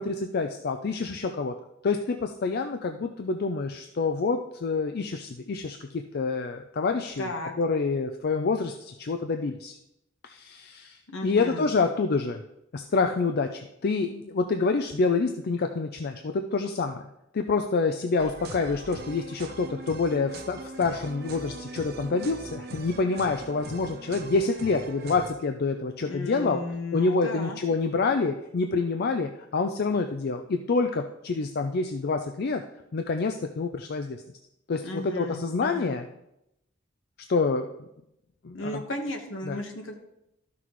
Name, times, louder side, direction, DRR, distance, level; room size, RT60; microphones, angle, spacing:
voice 1, 0.0-1.5 1.8-7.3 7.6-9.8 10.2-12.4 12.7-17.0 17.3-26.6 26.9-32.6 32.9-34.2 34.7-36.0 37.3-37.7 38.4-38.7 39.4-39.6, left 4 dB, 50° left, 6 dB, 0.4 m, -27 dB
voice 2, 7.2-7.5 11.1-11.7 26.0-27.6 34.8-36.0 38.5-39.9, left 2 dB, 70° left, 3 dB, 1.3 m, -34 dB
sound 1, 18.2-25.3, right 2 dB, 55° right, 0.7 m, -41 dB
13.0 x 6.0 x 3.1 m, 0.85 s
head